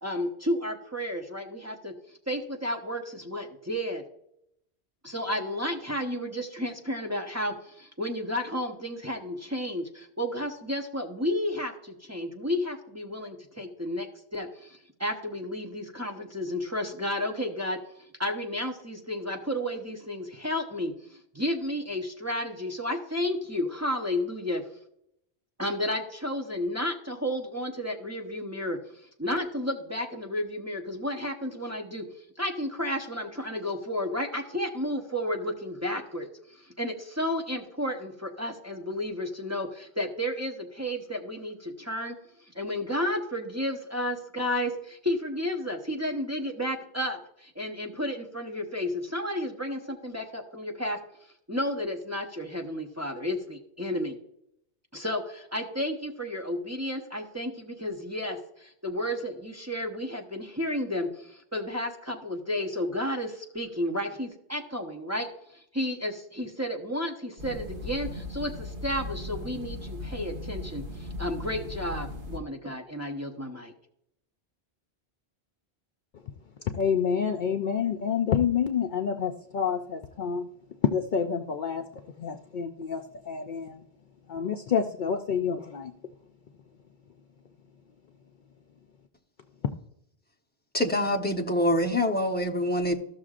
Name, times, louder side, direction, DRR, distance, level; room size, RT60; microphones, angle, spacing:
voice 1, 0.0-1.9 2.3-4.0 5.0-14.1 14.3-17.8 18.2-24.6 25.6-28.8 29.2-32.0 32.4-42.2 42.5-51.0 51.5-54.2 54.9-73.7, left 1 dB, 15° right, 1 dB, 0.8 m, -32 dB
sound 1, 67.4-72.4, left 2 dB, 55° right, 1.4 m, -37 dB
voice 2, 76.6-80.5 80.8-83.8 84.3-85.9 89.6-89.7, left 7 dB, 55° left, 5 dB, 0.6 m, -28 dB
voice 3, 90.7-92.9, left 1 dB, 10° left, 2 dB, 0.9 m, -25 dB
14.5 x 6.4 x 2.4 m, 0.75 s
omnidirectional pair, 1.1 m